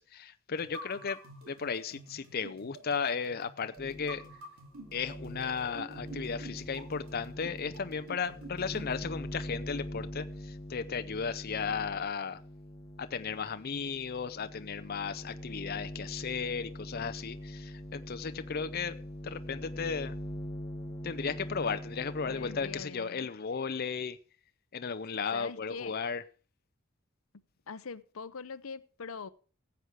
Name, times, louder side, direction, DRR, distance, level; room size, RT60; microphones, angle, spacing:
voice 1, 0.0-4.2 4.9-12.4 13.0-19.0 19.2-20.1 21.0-24.2 24.7-26.2, left 6 dB, 45° left, 0.6 m, -35 dB
sound 1, 0.6-9.1, right 1 dB, 90° right, 2.6 m, -49 dB
sound 2, 3.8-4.4 4.7-22.8, equal, 15° left, 1.2 m, -43 dB
voice 2, 22.3-23.3 25.3-26.0 27.7-29.3, left 5 dB, 85° left, 0.7 m, -43 dB
15.0 x 8.0 x 4.7 m
head